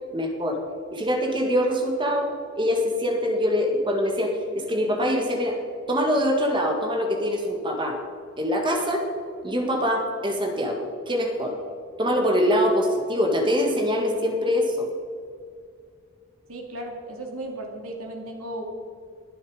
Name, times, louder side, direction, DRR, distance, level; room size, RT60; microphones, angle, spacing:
voice 1, 0.1-0.6 0.9-2.3 2.5-5.6 5.9-8.0 8.4-9.1 9.4-11.5 12.0-14.9, equal, 20° right, 3 dB, 1.8 m, -24 dB
voice 2, 16.5-18.6, right 1 dB, 80° right, 1 dB, 2.5 m, -35 dB
21.0 x 7.2 x 5.0 m, 2.3 s
head